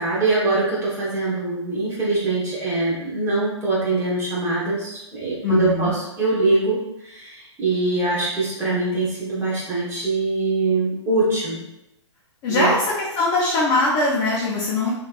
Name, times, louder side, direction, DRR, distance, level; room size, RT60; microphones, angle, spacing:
voice 1, 0.0-11.6 12.5-12.7, right 3 dB, 15° right, -6 dB, 1.2 m, -23 dB
voice 2, 5.4-5.9 12.4-14.9, left 2 dB, 25° left, -5 dB, 0.6 m, -21 dB
3.4 x 3.0 x 2.4 m, 0.88 s
hypercardioid pair, 130°, 15 cm